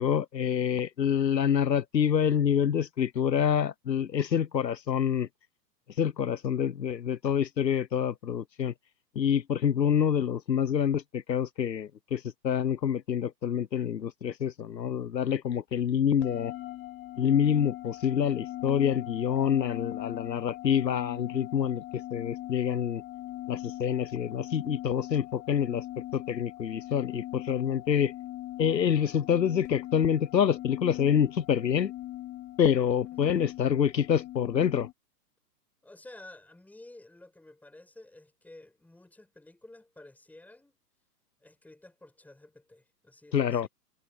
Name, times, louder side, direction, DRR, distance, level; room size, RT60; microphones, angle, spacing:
voice 1, 0.0-5.3 6.0-8.7 9.2-16.5 17.2-23.0 23.5-25.8 26.1-28.1 28.6-31.9 32.6-34.9 43.3-43.7, left 8 dB, 85° left, 0.8 m, -27 dB
sound 1, 16.2-34.9, left 15 dB, 25° left, 2.5 m, -41 dB
voice 2, 33.2-33.5 35.8-40.8 41.4-43.7, left 2 dB, 5° left, 5.5 m, -52 dB
figure-of-eight pair, 115°, 49 cm